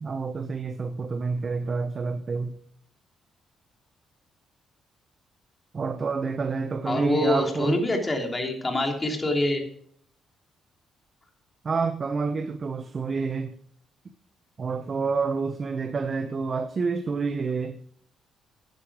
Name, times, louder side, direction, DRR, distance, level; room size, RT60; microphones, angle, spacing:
voice 1, 0.0-2.6 5.7-7.8 11.6-13.5 14.6-17.8, right 4 dB, 40° right, 0.8 m, -28 dB
voice 2, 6.8-9.6, left 1 dB, 20° left, 3.1 m, -25 dB
11.5 x 10.5 x 4.9 m
cardioid pair, 90°, 0 cm